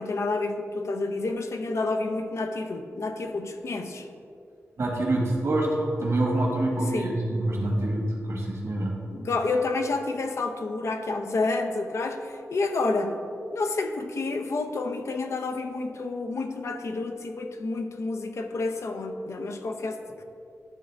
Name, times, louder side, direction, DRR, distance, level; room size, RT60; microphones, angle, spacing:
voice 1, 0.0-4.1 6.9-7.2 9.1-13.2 13.5-20.0, left 3 dB, 65° left, 5 dB, 0.6 m, -29 dB
voice 2, 4.8-9.0, right 1 dB, 65° right, -1 dB, 1.6 m, -26 dB
11.0 x 3.8 x 3.4 m, 2.4 s
cardioid pair, 80°, 5 cm